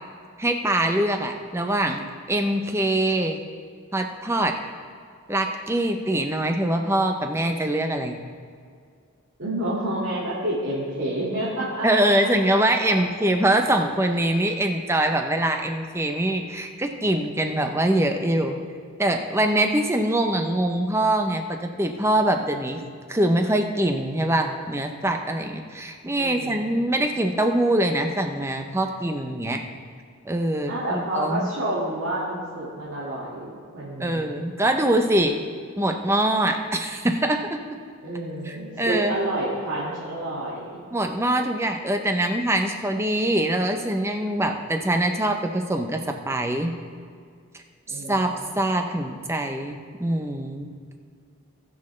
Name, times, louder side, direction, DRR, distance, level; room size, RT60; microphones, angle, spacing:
voice 1, 0.4-2.0 2.3-3.4 3.9-4.6 5.3-8.2 11.8-18.6 19.0-22.8 23.1-29.6 30.2-31.5 34.0-35.4 35.8-37.6 38.8-39.2 40.9-46.7 47.9-48.3 48.6-50.7, right 1 dB, 10° right, 4 dB, 0.6 m, -23 dB
voice 2, 9.4-12.1 12.8-12.9 26.1-26.9 30.7-34.4 38.0-40.9 47.9-48.6, right 1 dB, 70° right, -9 dB, 2.0 m, -29 dB
19.0 x 6.4 x 3.2 m, 2.2 s
head